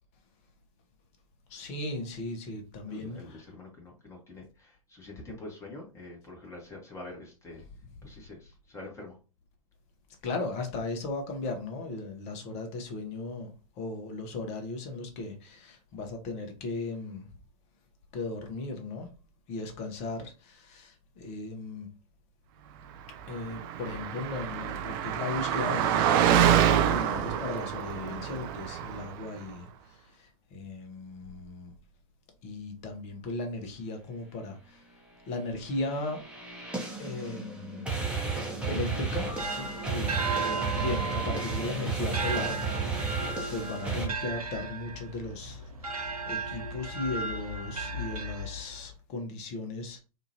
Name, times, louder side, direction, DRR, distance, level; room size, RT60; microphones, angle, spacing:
voice 1, 1.5-3.5 10.2-17.3 18.1-19.1 19.5-21.9 23.3-31.7 32.4-34.9 35.3-36.3 37.0-38.0 38.7-43.1 43.5-50.0, left 2 dB, 35° left, 0.9 m, -37 dB
voice 2, 2.9-7.6 8.0-9.2 40.5-40.7, left 2 dB, 15° left, 1.1 m, -45 dB
Car passing by, 23.3-29.2, right 9 dB, 40° right, 0.4 m, -26 dB
sound 1, 35.7-44.1, right 4 dB, 5° right, 0.9 m, -33 dB
sound 2, 39.0-48.9, right 3 dB, 85° right, 0.6 m, -35 dB
2.8 x 2.4 x 2.7 m
figure-of-eight pair, 100°, 18 cm